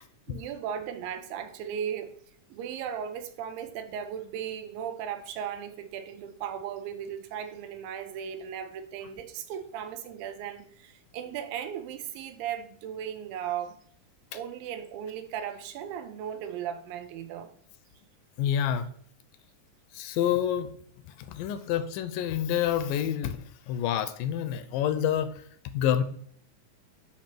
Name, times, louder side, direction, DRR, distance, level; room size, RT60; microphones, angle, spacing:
voice 1, 0.3-2.2 2.5-13.8 14.3-17.5, right 9 dB, 85° right, 2.5 m, -36 dB
voice 2, 18.4-18.9 20.0-20.7 21.3-23.4 23.7-25.3 25.7-26.0, left 10 dB, 85° left, 2.2 m, -27 dB
8.6 x 3.0 x 5.9 m
omnidirectional pair, 4.0 m